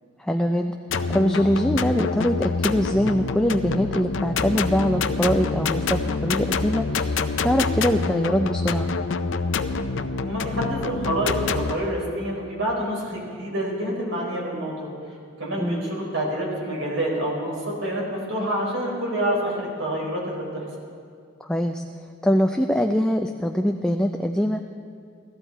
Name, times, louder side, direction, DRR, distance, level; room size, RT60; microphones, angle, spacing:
voice 1, 0.2-0.8 1.1-8.9 15.6-15.8 21.4-21.8 22.2-24.7, equal, 5° left, 4 dB, 0.4 m, -23 dB
sound 1, 0.9-11.7, left 4 dB, 70° left, 0.6 m, -26 dB
voice 2, 10.2-14.9 15.4-20.6, right 1 dB, 85° right, -3 dB, 4.5 m, -27 dB
17.0 x 14.0 x 4.5 m, 2.2 s
head